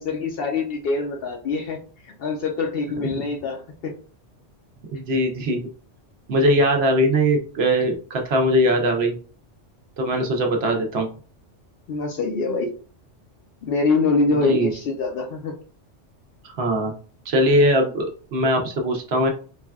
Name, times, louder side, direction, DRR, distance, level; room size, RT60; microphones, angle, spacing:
voice 1, 0.0-1.8 2.2-3.9 11.9-12.7 13.6-15.6, left 3 dB, 65° left, 3 dB, 0.7 m, -24 dB
voice 2, 4.9-5.6 6.3-9.2 10.0-11.1 14.3-14.7 16.4-16.9 17.3-19.3, equal, 65° right, 2 dB, 0.8 m, -21 dB
3.2 x 2.2 x 2.2 m, 0.39 s
omnidirectional pair, 1.3 m